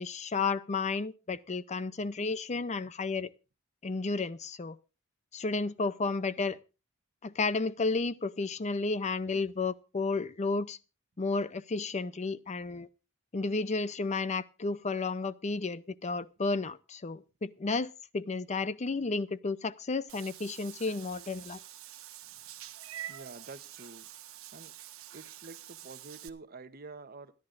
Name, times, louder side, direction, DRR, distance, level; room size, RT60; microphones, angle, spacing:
voice 1, 0.0-3.3 3.8-4.8 5.3-6.6 7.2-10.8 11.2-12.9 13.3-21.6, left 3 dB, 35° left, 0.6 m, -32 dB
Meow / Water / Bathtub (filling or washing), 20.1-26.3, right 12 dB, 80° right, 1.1 m, -47 dB
voice 2, 23.1-24.0 24.5-24.7 25.1-27.3, right 3 dB, 45° right, 0.9 m, -48 dB
27.5 x 10.5 x 2.5 m
head